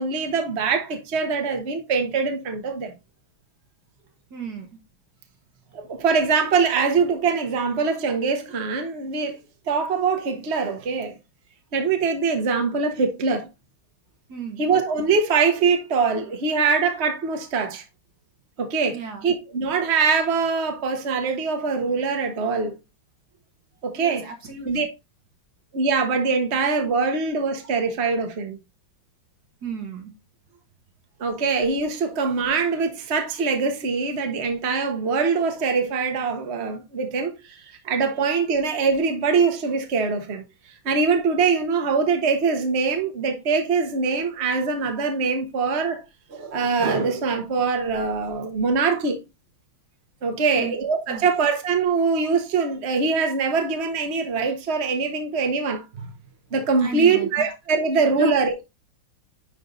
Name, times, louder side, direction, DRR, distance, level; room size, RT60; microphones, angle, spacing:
voice 1, 0.0-2.9 5.7-9.4 9.7-11.1 11.7-13.5 14.6-17.8 18.6-22.7 23.8-24.3 24.6-24.9 25.7-28.6 31.2-37.3 37.8-40.4 40.8-46.0 46.3-49.2 50.2-56.1 56.5-58.6, right 5 dB, 35° right, 1.3 m, -23 dB
voice 2, 4.3-4.8 14.3-14.7 18.9-19.3 23.9-24.7 29.6-30.1 50.4-50.7 51.1-51.2 56.8-57.5 58.1-58.3, right 4 dB, 55° right, 1.7 m, -32 dB
10.5 x 3.5 x 4.0 m
omnidirectional pair, 2.2 m